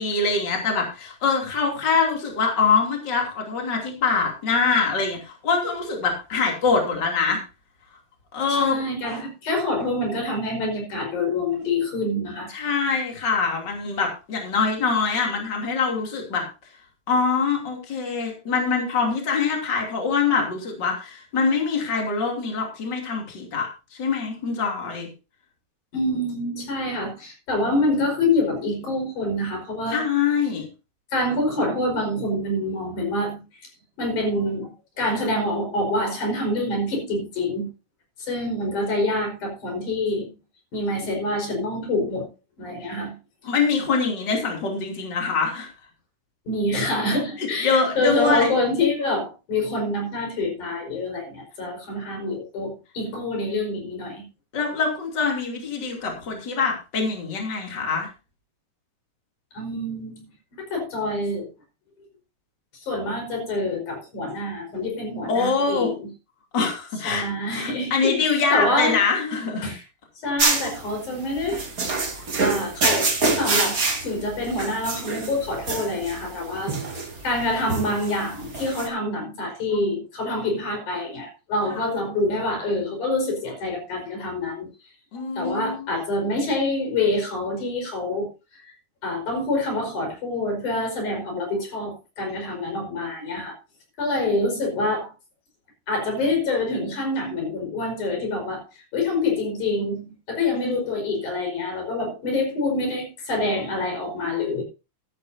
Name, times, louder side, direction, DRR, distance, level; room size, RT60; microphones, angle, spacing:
voice 1, 0.0-7.4 8.3-8.8 12.5-16.5 17.1-25.1 29.9-30.6 43.4-45.7 47.4-48.5 54.5-58.1 65.3-65.9 66.5-69.7 81.7-81.9 85.1-85.9 100.5-100.8, left 5 dB, 35° left, 1 dB, 3.4 m, -24 dB
voice 2, 8.5-12.5 25.9-30.0 31.1-33.4 34.0-37.7 38.2-40.3 40.7-42.3 42.6-43.1 46.5-54.3 59.5-60.2 60.6-61.5 62.7-66.1 67.0-69.0 69.6-69.8 70.2-84.7 85.1-88.7 89.0-93.5 94.0-95.1 95.9-104.6, left 2 dB, 85° left, 2 dB, 6.4 m, -26 dB
sound 1, 70.4-78.9, right 3 dB, 30° right, 2.4 m, -26 dB
14.0 x 12.5 x 2.7 m, 0.29 s
omnidirectional pair, 3.4 m